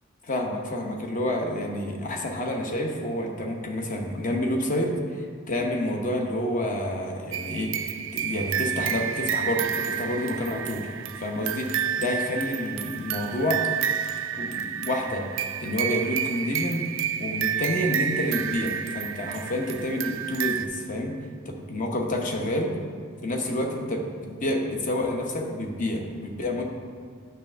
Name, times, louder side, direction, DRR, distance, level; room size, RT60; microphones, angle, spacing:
voice 1, 0.2-10.9 11.2-13.7 14.3-16.8 17.2-21.2 21.5-22.7 23.2-26.6, left 1 dB, 40° left, 1 dB, 0.9 m, -29 dB
sound 1, 7.3-20.7, right 9 dB, 60° right, 0.3 m, -30 dB
8.8 x 3.3 x 6.2 m, 2.1 s
head